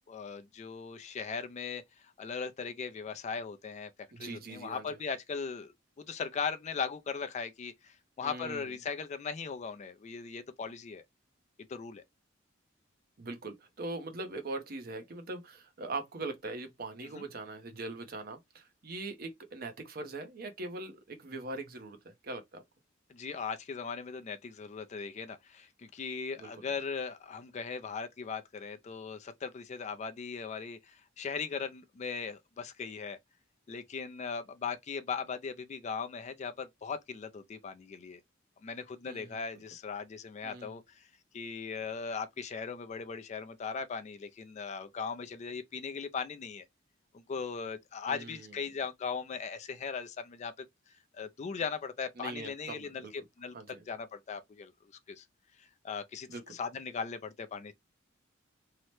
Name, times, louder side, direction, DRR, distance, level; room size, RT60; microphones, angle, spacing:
voice 1, 0.1-1.8 2.2-3.9 4.2-11.0 11.7-12.0 17.1-17.2 23.1-33.2 33.7-38.2 38.6-41.1 41.3-46.7 47.1-50.7 51.1-53.1 53.4-53.5 53.9-55.3 55.6-57.7, left 5 dB, 35° left, 0.3 m, -39 dB
voice 2, 4.1-5.0 8.2-8.7 13.2-22.6 26.4-26.5 39.0-39.4 40.4-40.8 48.1-48.5 52.2-53.1 53.5-53.8 56.3-56.6, right 2 dB, 50° right, 0.7 m, -41 dB
2.8 x 2.1 x 3.0 m
head